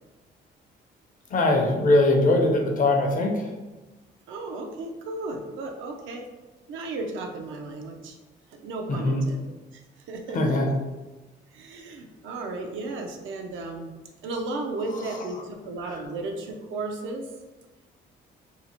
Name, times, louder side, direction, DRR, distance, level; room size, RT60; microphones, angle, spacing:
voice 1, 1.3-3.5 8.9-9.2 10.3-10.7, left 2 dB, 40° left, 2 dB, 0.5 m, -21 dB
voice 2, 4.3-6.3 6.7-8.2 8.5-9.8 10.1-10.6 11.5-13.9 14.2-17.3, right 2 dB, 80° right, 3 dB, 0.5 m, -34 dB
2.7 x 2.0 x 2.8 m, 1.1 s
cardioid pair, 90°, 20 cm